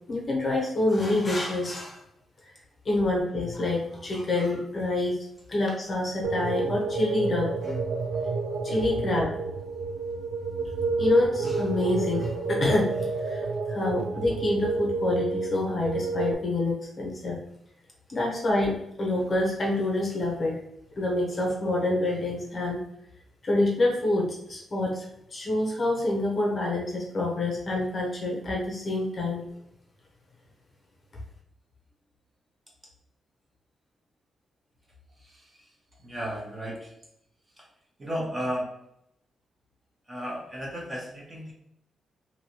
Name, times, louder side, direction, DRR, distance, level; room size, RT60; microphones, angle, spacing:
voice 1, 0.1-2.0 2.4-2.5 2.8-7.8 8.6-9.3 11.0-17.4 18.1-20.5 21.0-22.8 23.4-25.1 25.3-29.5, left 2 dB, 30° left, -2 dB, 0.7 m, -27 dB
sound 1, 6.2-16.3, right 3 dB, 75° right, 0.4 m, -30 dB
voice 2, 36.0-36.9 38.0-38.7 40.1-41.5, equal, 20° right, -3 dB, 0.9 m, -33 dB
3.0 x 2.6 x 2.9 m, 0.75 s
wide cardioid pair, 150°, 0 cm